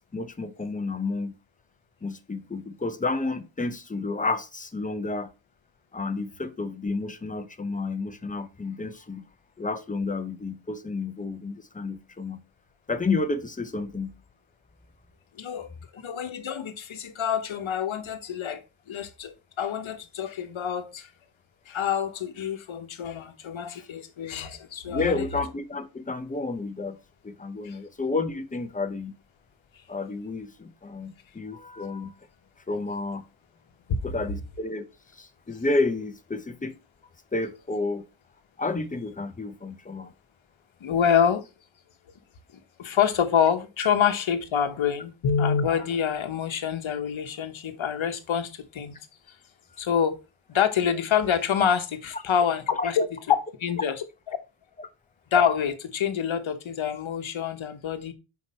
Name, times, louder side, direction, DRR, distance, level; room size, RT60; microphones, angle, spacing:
voice 1, 0.1-1.3 2.0-5.3 5.9-9.2 9.6-12.4 12.9-14.2 24.9-27.0 27.2-29.1 29.9-32.1 32.7-33.2 34.0-34.8 35.1-36.8 37.3-38.0 38.6-40.1 52.8-52.9 54.8-54.9, left 3 dB, 15° left, 0.6 m, -30 dB
voice 2, 15.4-18.6 18.9-21.1 21.7-25.3 27.6-27.8 40.8-41.4 42.8-49.0 49.8-50.2 50.5-53.4 53.6-54.4 55.3-58.1, left 8 dB, 70° left, 1.0 m, -26 dB
5.8 x 4.7 x 4.2 m
wide cardioid pair, 160°, 49 cm